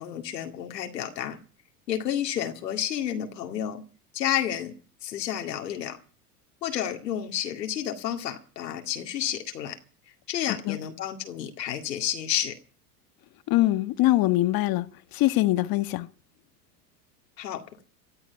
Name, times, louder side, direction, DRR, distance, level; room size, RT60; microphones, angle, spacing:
voice 1, 0.0-1.4 1.9-3.8 4.1-4.7 5.0-6.0 6.6-9.8 10.3-12.6 17.4-17.8, left 10 dB, 85° left, 2.2 m, -30 dB
voice 2, 13.5-16.1, left 17 dB, 45° left, 1.5 m, -23 dB
19.0 x 13.0 x 5.8 m
hypercardioid pair, 95°, 49 cm